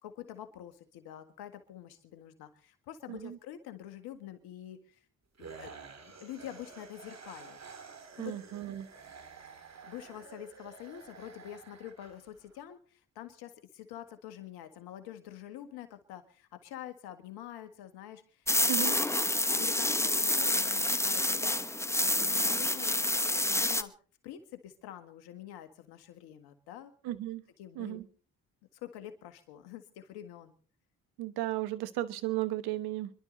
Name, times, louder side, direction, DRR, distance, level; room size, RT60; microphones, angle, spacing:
voice 1, 0.0-5.0 5.4-5.7 6.2-7.6 8.2-8.4 9.8-19.0 19.5-23.9 24.2-26.9 27.6-28.0 28.7-30.5, left 11 dB, 85° left, 9 dB, 1.8 m, -46 dB
sound 1, 5.4-12.6, right 5 dB, 45° right, 2.8 m, -50 dB
voice 2, 8.2-8.9 18.7-19.0 27.0-27.4 27.8-28.0 31.2-33.1, right 15 dB, 85° right, 14 dB, 1.1 m, -34 dB
sound 2, 18.5-23.8, left 1 dB, 5° left, 1.0 m, -28 dB
26.0 x 12.0 x 4.0 m, 0.41 s
supercardioid pair, 50°, 37 cm